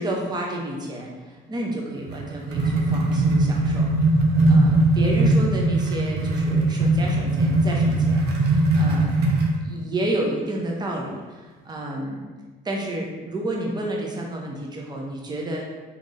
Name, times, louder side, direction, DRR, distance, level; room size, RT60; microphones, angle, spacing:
voice 1, 0.0-3.9 4.5-9.1 9.6-12.3 12.6-15.8, right 1 dB, 25° right, -1 dB, 0.8 m, -30 dB
sound 1, 2.0-9.6, right 2 dB, 75° right, 0.8 m, -20 dB
3.9 x 3.0 x 3.8 m, 1.2 s
cardioid pair, 110°, 17 cm